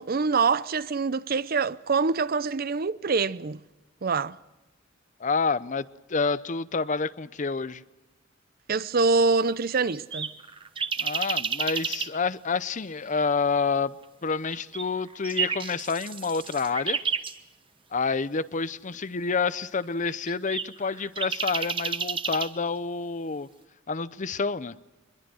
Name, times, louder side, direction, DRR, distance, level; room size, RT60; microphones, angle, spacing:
voice 1, 0.0-3.6 4.0-4.4 8.7-10.3, right 4 dB, 50° right, 0.6 m, -25 dB
voice 2, 5.2-7.8 11.0-14.0 14.2-17.0 17.9-23.5 23.9-24.7, left 4 dB, 40° left, 0.7 m, -28 dB
sound 1, 9.5-12.1 14.5-17.3 20.1-22.5, right 6 dB, 25° right, 1.0 m, -31 dB
24.0 x 22.0 x 6.3 m
head